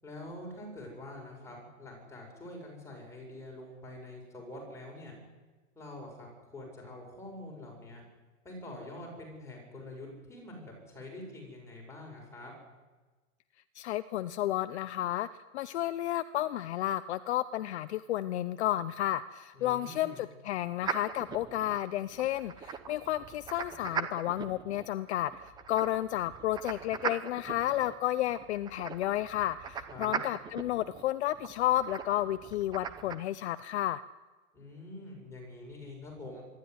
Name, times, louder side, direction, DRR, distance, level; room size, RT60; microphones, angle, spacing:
voice 1, 0.0-5.2 5.8-8.0 8.4-12.5 19.5-20.2 29.9-30.2 34.5-36.4, left 1 dB, 5° left, -1 dB, 7.3 m, -45 dB
voice 2, 13.8-15.3 15.5-34.0, left 13 dB, 55° left, 13 dB, 0.7 m, -32 dB
sound 1, 20.8-33.2, right 6 dB, 10° right, 0.7 m, -40 dB
24.5 x 12.5 x 9.7 m, 1.3 s
hypercardioid pair, 155°, 40 cm